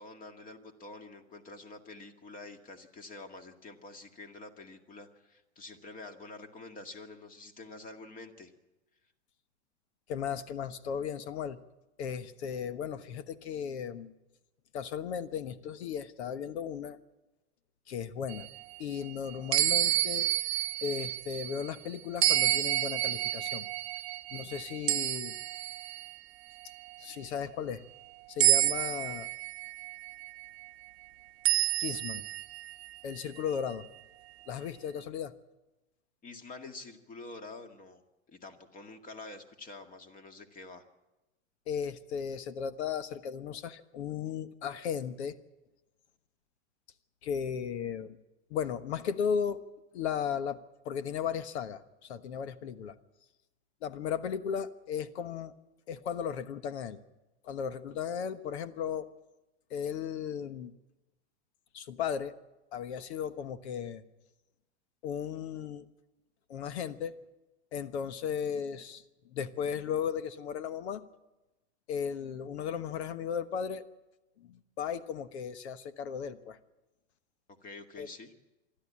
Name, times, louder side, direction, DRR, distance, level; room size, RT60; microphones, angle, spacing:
voice 1, 0.0-8.5 27.1-27.2 36.2-38.0 38.3-40.8 77.6-78.3, left 3 dB, 25° left, 7 dB, 2.1 m, -47 dB
voice 2, 10.1-11.6 12.0-14.1 14.7-17.0 17.9-18.5 18.8-20.3 20.8-23.6 24.3-25.4 27.0-27.8 28.3-29.3 31.8-32.2 33.0-33.8 34.5-35.3 41.7-45.4 47.2-48.2 48.5-49.6 49.9-50.6 50.8-52.9 53.8-55.5 55.9-57.0 57.4-59.1 59.7-60.7 61.7-62.3 62.7-64.0 65.0-65.9 66.5-67.2 67.7-69.0 69.3-71.0 71.9-73.8 74.4-76.6 78.0-78.1, left 7 dB, 70° left, 13 dB, 1.3 m, -35 dB
sound 1, 18.3-21.7 22.2-26.1 26.6-27.0 28.4-30.5 31.4-33.4, right 19 dB, 65° right, 0.7 m, -30 dB
26.0 x 12.0 x 8.6 m, 1.0 s
hypercardioid pair, 125°, 34 cm